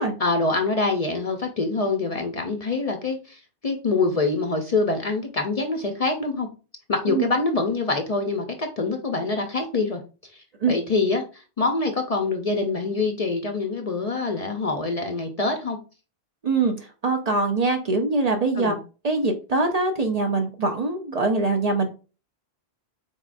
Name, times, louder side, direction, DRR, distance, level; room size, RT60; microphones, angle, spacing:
voice 1, 0.2-6.5 6.9-10.0 10.3-15.8 18.6-18.8, left 3 dB, 45° left, 4 dB, 0.5 m, -25 dB
voice 2, 16.4-18.7 19.0-21.9, right 3 dB, 50° right, 4 dB, 0.5 m, -23 dB
4.1 x 3.6 x 2.4 m, 0.34 s
omnidirectional pair, 1.1 m